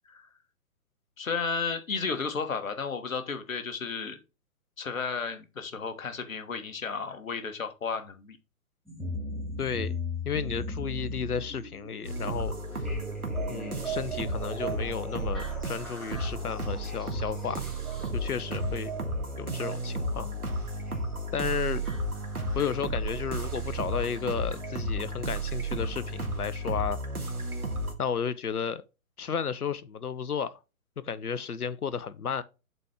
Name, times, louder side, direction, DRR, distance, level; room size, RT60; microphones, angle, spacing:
voice 1, 1.2-4.2 4.8-8.4, left 5 dB, 60° left, 1.3 m, -33 dB
sound 1, 8.9-24.8 26.0-26.1 26.9-27.0 27.6-27.7, equal, ahead, 0.9 m, -40 dB
voice 2, 9.6-9.9 10.2-12.9 13.5-17.7 18.1-18.9 19.4-20.3 21.3-21.8 22.5-27.0 28.0-28.8 29.2-30.6 31.0-32.4, left 7 dB, 80° left, 0.7 m, -33 dB
sound 2, 12.0-27.9, right 1 dB, 75° right, 1.6 m, -33 dB
7.6 x 4.2 x 3.5 m
figure-of-eight pair, 130°, 44 cm